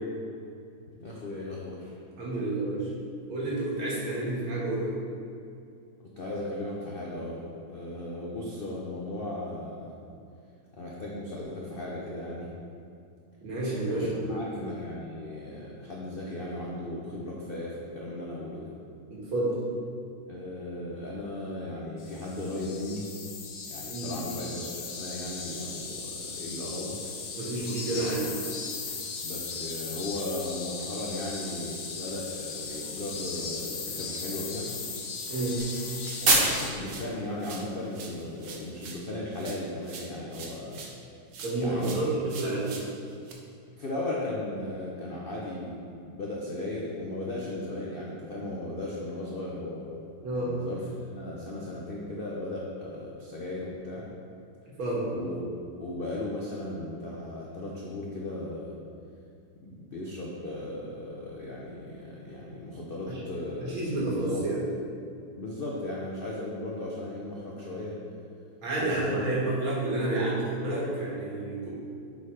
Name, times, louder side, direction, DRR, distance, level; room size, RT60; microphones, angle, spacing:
voice 1, 1.0-2.0 6.2-9.9 10.7-12.5 13.8-18.7 20.3-23.1 23.7-27.0 27.9-28.0 29.2-34.7 36.2-40.8 41.6-42.1 43.8-49.9 50.4-50.8 51.1-54.1 55.1-55.4 55.8-58.8 59.6-64.4 65.3-67.9 68.8-69.3, left 1 dB, 80° left, -4 dB, 0.5 m, -36 dB
voice 2, 2.2-2.9 3.3-4.9 13.4-14.4 19.1-19.6 23.9-24.1 27.4-28.3 35.3-35.6 41.4-42.7 50.2-50.6 54.8-55.1 63.1-63.2 63.6-64.6 68.6-71.7, right 2 dB, 90° right, -6 dB, 2.6 m, -30 dB
sound 1, 22.0-36.7, left 5 dB, 60° left, 1.1 m, -37 dB
sound 2, 27.0-38.8, right 2 dB, 40° right, 1.0 m, -35 dB
sound 3, 35.6-37.1 37.4-41.0 41.3-43.3, right 4 dB, 60° right, 1.1 m, -44 dB
7.2 x 4.2 x 4.8 m, 2.5 s
omnidirectional pair, 2.2 m